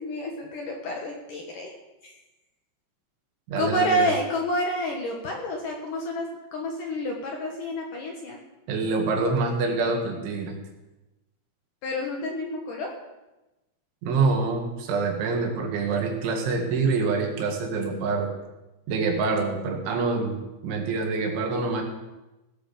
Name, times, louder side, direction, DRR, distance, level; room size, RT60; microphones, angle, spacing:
voice 1, 0.0-1.7 2.0-2.1 3.6-6.3 6.5-8.4 11.8-12.9, equal, 60° left, 1 dB, 2.4 m, -29 dB
voice 2, 3.5-4.1 8.7-10.6 14.0-18.3 18.9-20.4 20.6-21.9, right 4 dB, 80° right, 2 dB, 4.3 m, -26 dB
17.5 x 8.1 x 6.8 m, 1.0 s
omnidirectional pair, 5.4 m